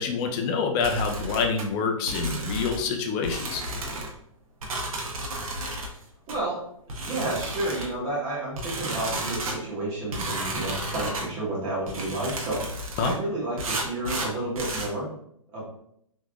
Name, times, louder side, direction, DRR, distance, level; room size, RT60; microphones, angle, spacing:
voice 1, 0.0-3.6 13.0-13.1, left 5 dB, 20° left, 3 dB, 0.4 m, -26 dB
sound 1, 0.8-1.6 2.1-2.9 3.2-4.1 4.6-5.9 6.3-6.4 6.9-7.9 8.6-9.6 10.1-11.3 11.9-13.2 13.6-14.9, right 1 dB, 80° right, 1.0 m, -32 dB
voice 2, 6.3-6.6 7.0-15.1 15.5-15.6, right 2 dB, 25° right, -6 dB, 1.4 m, -31 dB
3.5 x 3.0 x 2.4 m, 0.71 s
hypercardioid pair, 150°, 18 cm